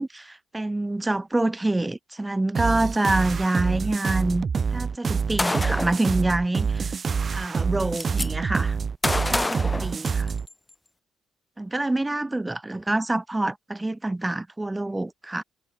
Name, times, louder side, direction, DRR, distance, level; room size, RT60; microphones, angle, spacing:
voice 1, 0.0-4.4 4.7-6.9 7.3-8.8 9.3-10.3 11.6-15.4, right 2 dB, 15° right, 1.7 m, -26 dB
sound 1, 2.5-10.5, right 5 dB, 40° right, 1.5 m, -26 dB
Gunshot gunfire, 5.4-6.0 7.2-7.3 7.6-8.3 9.0-10.5, left 2 dB, 15° left, 1.6 m, -27 dB
cardioid pair, 90°, 0 cm